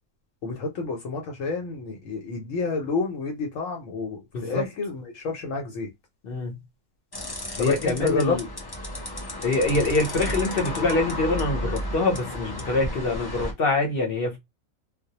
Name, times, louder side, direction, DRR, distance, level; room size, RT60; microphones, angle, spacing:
voice 1, 0.4-5.9 7.6-8.4, left 4 dB, 75° left, 1.0 m, -29 dB
voice 2, 4.3-4.6 6.2-6.6 7.6-8.4 9.4-14.4, left 2 dB, 50° left, 0.9 m, -25 dB
sound 1, 7.1-13.5, left 1 dB, 30° left, 0.5 m, -33 dB
2.3 x 2.0 x 2.8 m
omnidirectional pair, 1.4 m